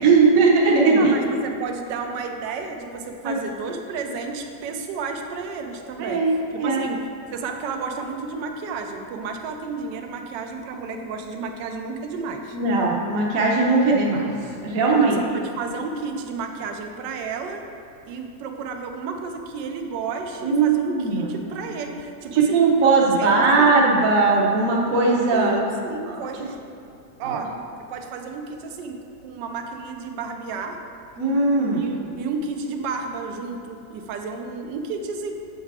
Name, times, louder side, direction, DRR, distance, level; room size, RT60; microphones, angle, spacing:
voice 1, 0.0-1.2 3.2-3.4 6.0-6.8 12.5-14.2 14.6-15.2 20.4-21.3 22.3-25.5 26.1-26.2 27.2-27.4 31.2-31.8, right 4 dB, 60° right, -3 dB, 1.1 m, -19 dB
voice 2, 1.0-6.2 6.5-7.0 7.3-12.6 14.9-17.6 18.1-22.9 23.2-23.8 25.3-26.6 27.2-27.5 27.9-30.8 31.8-35.3, right 4 dB, 80° right, 4 dB, 1.3 m, -32 dB
7.4 x 4.7 x 4.7 m, 2.7 s
omnidirectional pair, 1.9 m